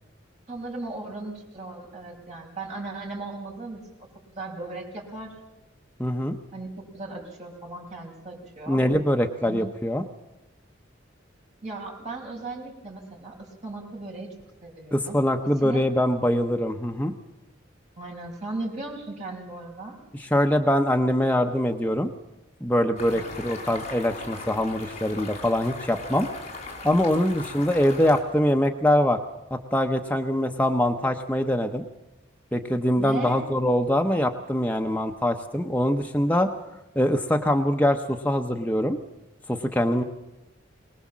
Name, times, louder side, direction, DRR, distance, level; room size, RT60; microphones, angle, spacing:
voice 1, 0.5-3.8 4.3-5.3 6.5-6.7 6.9-8.8 9.4-9.6 11.6-14.3 14.6-15.2 15.6-15.8 18.0-20.0 23.1-23.4 33.0-33.4, right 2 dB, 35° right, -2 dB, 6.1 m, -37 dB
voice 2, 6.0-6.4 8.7-10.0 14.9-17.1 20.1-22.1 22.6-26.3 26.8-29.2 29.5-31.8 32.5-36.5 37.0-39.0 39.5-40.0, left 1 dB, 10° left, 4 dB, 0.8 m, -23 dB
sound 1, 23.0-28.2, left 3 dB, 35° left, 4.3 m, -39 dB
23.0 x 19.5 x 7.4 m, 0.97 s
head